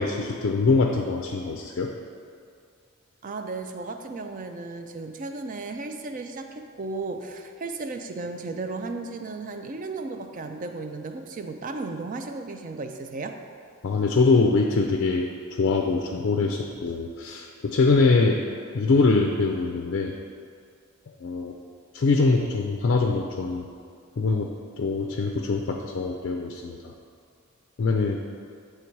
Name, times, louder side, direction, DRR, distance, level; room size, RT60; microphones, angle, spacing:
voice 1, 0.0-1.9 13.8-18.4 18.7-20.1 21.2-21.5 21.9-23.7 24.2-26.9 27.8-28.2, left 3 dB, 55° left, 2 dB, 0.4 m, -23 dB
voice 2, 3.2-13.4, right 3 dB, 40° right, 6 dB, 0.4 m, -35 dB
8.4 x 3.3 x 4.6 m, 2.2 s
head